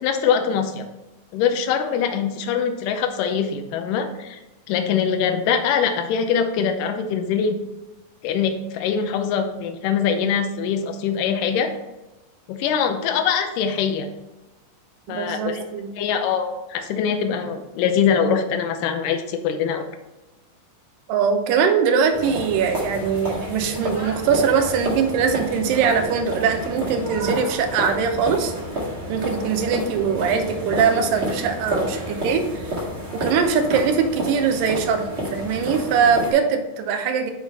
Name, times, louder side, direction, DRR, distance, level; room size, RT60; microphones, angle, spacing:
voice 1, 0.0-0.9 1.3-4.4 4.7-7.6 8.2-11.7 12.5-14.1 15.1-15.6 16.0-19.9, left 7 dB, 80° left, 6 dB, 2.2 m, -23 dB
voice 2, 15.1-15.9 21.1-28.5 29.1-32.8 33.1-37.3, right 6 dB, 80° right, 5 dB, 2.3 m, -21 dB
sound 1, 22.1-36.3, equal, 35° right, 1.0 m, -30 dB
7.1 x 3.9 x 4.3 m, 1.0 s
omnidirectional pair, 4.1 m